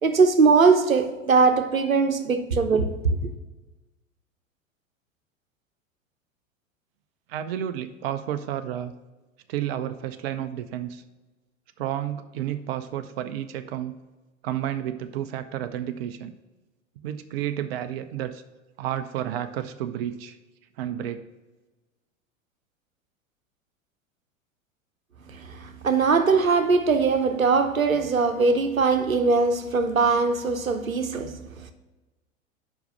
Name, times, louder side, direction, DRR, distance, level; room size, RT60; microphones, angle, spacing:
voice 1, 0.0-3.3 25.3-31.7, right 4 dB, 85° right, 0.8 m, -21 dB
voice 2, 7.3-8.9 9.5-11.0 11.8-13.9 14.4-16.3 17.0-18.4 18.8-20.4 20.8-21.3, right 11 dB, 50° right, 0.5 m, -31 dB
5.3 x 4.6 x 6.4 m
figure-of-eight pair, 90°, 40 cm